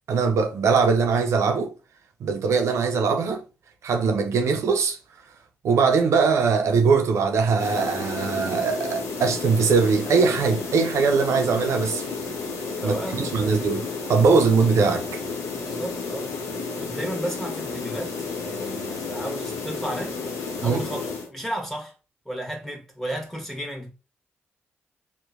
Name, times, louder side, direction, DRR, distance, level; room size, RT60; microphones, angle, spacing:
voice 1, 0.1-1.7 2.2-3.4 3.8-5.0 5.6-12.0 12.8-13.8 14.1-15.0 20.6-20.8, right 5 dB, 70° right, 0.4 m, -21 dB
sound 1, 7.6-21.3, left 4 dB, 75° left, 0.6 m, -32 dB
voice 2, 12.8-13.5 15.5-16.3 16.8-20.2 20.6-21.9 22.2-23.9, right 1 dB, 5° left, 1.1 m, -33 dB
2.8 x 2.1 x 2.4 m
supercardioid pair, 45°, 5 cm